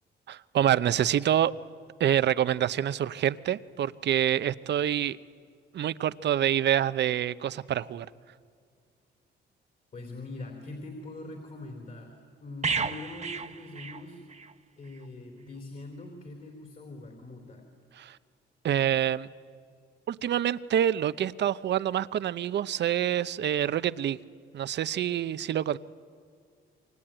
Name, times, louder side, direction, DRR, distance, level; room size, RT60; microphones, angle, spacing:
voice 1, 0.3-1.5 2.0-5.2 5.7-8.1 18.0-18.2 18.6-19.3 20.1-24.2 24.5-25.8, right 10 dB, 60° right, 0.7 m, -26 dB
voice 2, 9.9-14.2 14.8-17.7, left 2 dB, 45° left, 3.7 m, -43 dB
sound 1, 12.6-14.5 14.8-15.0, right 5 dB, 35° right, 1.2 m, -33 dB
27.5 x 24.0 x 9.0 m
cardioid pair, 90°, 20 cm